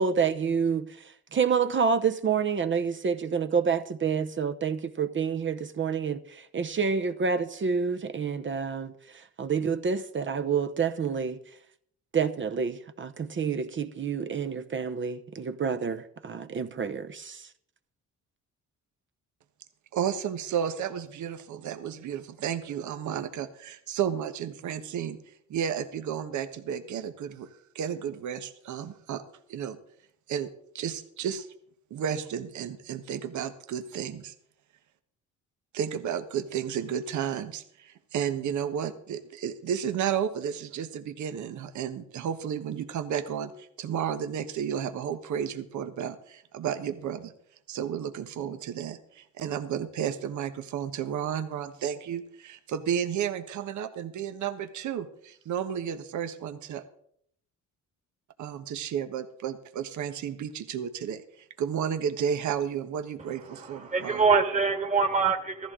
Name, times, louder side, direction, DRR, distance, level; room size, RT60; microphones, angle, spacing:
voice 1, 0.0-11.4 12.1-17.5, right 6 dB, 40° right, 0.9 m, -28 dB
voice 2, 19.9-25.2 25.5-27.5 27.7-29.2 29.5-29.8 30.3-30.5 30.7-31.5 31.9-34.3 35.7-47.3 47.7-56.8 58.4-64.2, right 8 dB, 75° right, 1.2 m, -32 dB
voice 3, 63.5-65.7, right 5 dB, 25° right, 1.8 m, -25 dB
15.5 x 14.0 x 3.8 m
cardioid pair, 90°, 30 cm